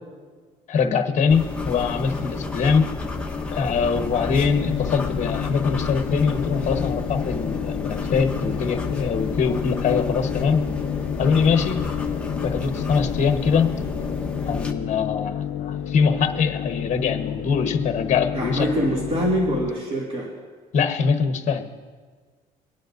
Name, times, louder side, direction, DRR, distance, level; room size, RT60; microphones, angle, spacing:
voice 1, 0.7-2.9 3.5-10.7 11.2-11.8 12.4-13.7 14.5-18.7 20.7-21.7, left 5 dB, 45° left, 6 dB, 1.1 m, -23 dB
sound 1, 1.3-14.7, left 3 dB, 5° left, 1.1 m, -30 dB
sound 2, 4.3-19.7, left 10 dB, 80° left, 0.6 m, -31 dB
voice 2, 18.3-20.3, right 1 dB, 35° right, -4 dB, 2.4 m, -24 dB
23.0 x 9.9 x 2.6 m, 1.5 s
cardioid pair, 110°, 17 cm